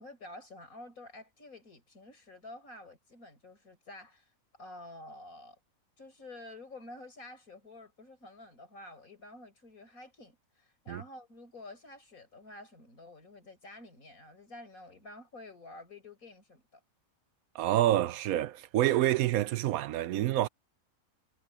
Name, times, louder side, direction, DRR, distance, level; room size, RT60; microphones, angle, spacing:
voice 1, 0.0-4.3 4.5-5.6 6.0-16.8, left 2 dB, 85° left, 5.9 m, -50 dB
voice 2, 17.5-20.5, right 13 dB, 85° right, 1.1 m, -27 dB
omnidirectional pair, 1.4 m